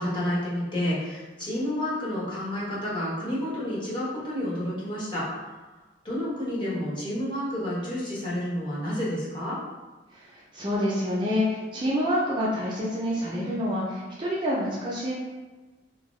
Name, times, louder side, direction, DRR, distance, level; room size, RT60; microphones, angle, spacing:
voice 1, 0.0-5.3 6.0-9.6, left 1 dB, 25° left, -8 dB, 0.9 m, -30 dB
voice 2, 10.1-15.1, equal, 25° right, -5 dB, 0.4 m, -27 dB
2.7 x 2.2 x 3.0 m, 1.2 s
head